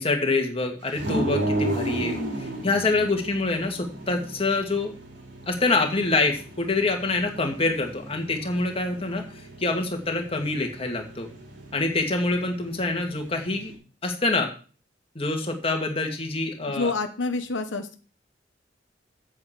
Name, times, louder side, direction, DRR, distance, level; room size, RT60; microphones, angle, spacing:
voice 1, 0.0-4.9 5.5-11.3 11.7-13.7 14.0-14.5 15.2-16.9, left 3 dB, 30° left, 4 dB, 2.0 m, -26 dB
sound 1, 0.9-13.7, right 1 dB, 85° right, 3.6 m, -34 dB
voice 2, 16.7-18.0, left 3 dB, 90° left, 8 dB, 1.0 m, -28 dB
8.0 x 6.4 x 7.5 m, 0.38 s
head